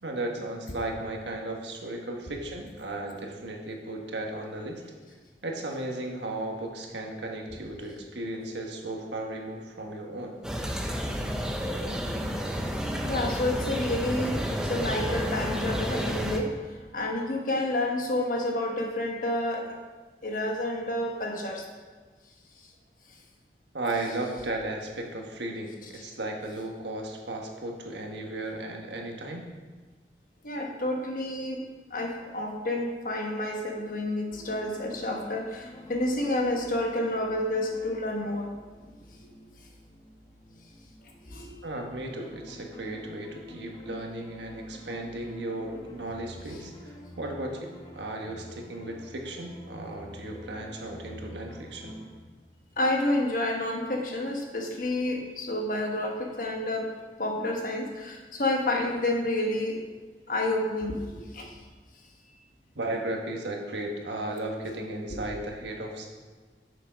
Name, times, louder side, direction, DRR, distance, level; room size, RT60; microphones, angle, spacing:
voice 1, 0.0-4.8 5.4-10.3 23.7-29.4 41.6-52.0 62.7-66.1, right 2 dB, 85° right, 1 dB, 1.4 m, -35 dB
sound 1, 10.4-16.4, equal, 5° right, 0.6 m, -30 dB
voice 2, 13.0-16.6 16.9-19.8 20.2-21.6 25.9-26.0 30.4-38.5 41.3-41.5 52.8-56.9 57.2-59.8 60.3-61.5 65.1-65.2, left 1 dB, 50° left, 1 dB, 1.2 m, -29 dB
sound 2, 34.3-52.2, equal, 25° left, 1.0 m, -47 dB
7.2 x 6.6 x 5.1 m, 1.4 s
head